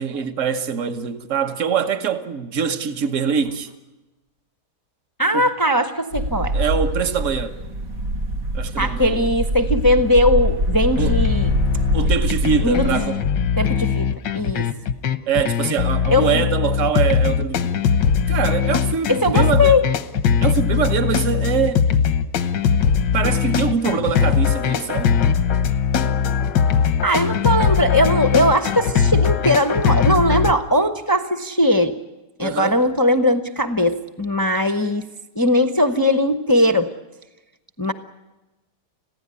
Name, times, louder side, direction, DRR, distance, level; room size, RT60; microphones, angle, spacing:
voice 1, 0.0-3.7 5.3-5.5 6.5-7.5 8.5-9.2 11.0-11.2 11.9-13.3 15.3-17.7 18.3-19.8 20.4-21.8 23.1-25.1 32.4-32.8, right 7 dB, 50° right, 1.5 m, -23 dB
voice 2, 5.2-6.5 8.8-11.5 12.6-13.0 13.6-14.1 14.3-14.7 16.1-16.4 19.1-19.8 27.0-32.0 32.4-35.0 35.4-36.9 37.8-37.9, left 1 dB, 20° left, 0.5 m, -19 dB
sound 1, 6.1-13.1, right 1 dB, 80° right, 2.4 m, -24 dB
sound 2, 11.0-30.5, left 7 dB, 85° left, 1.7 m, -20 dB
27.0 x 16.0 x 9.8 m
omnidirectional pair, 1.9 m